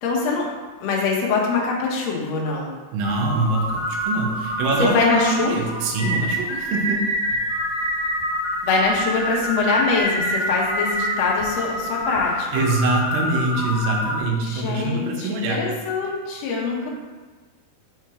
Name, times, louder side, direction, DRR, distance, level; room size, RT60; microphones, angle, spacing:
voice 1, 0.0-0.5 0.8-2.7 4.8-5.5 8.6-12.7 14.4-16.9, left 4 dB, 80° left, -2 dB, 1.5 m, -23 dB
voice 2, 2.9-7.0 12.5-15.6, right 3 dB, 75° right, 0 dB, 2.5 m, -24 dB
sound 1, 3.0-14.2, equal, 55° left, 2.4 m, -26 dB
5.7 x 4.5 x 4.8 m, 1.4 s
omnidirectional pair, 4.7 m